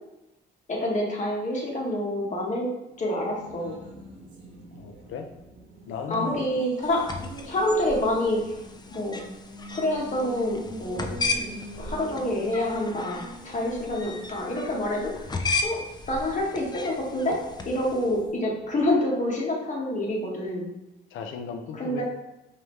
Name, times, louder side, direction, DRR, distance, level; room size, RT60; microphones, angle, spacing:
voice 1, 0.7-2.7 3.0-3.8 6.1-7.1 7.4-8.6 8.9-9.2 9.7-11.1 11.8-15.3 15.6-15.8 16.1-20.7 21.7-22.0, left 1 dB, 40° left, -2 dB, 1.3 m, -27 dB
Race car auto racing, 2.9-19.1, right 1 dB, 65° right, 1.0 m, -46 dB
voice 2, 4.7-5.3 5.9-6.4 21.1-22.0, left 6 dB, 80° left, 5 dB, 0.6 m, -35 dB
sound 1, 6.8-18.2, left 3 dB, 20° left, 0.5 m, -35 dB
4.8 x 2.9 x 3.1 m, 0.94 s
cardioid pair, 90°, 20 cm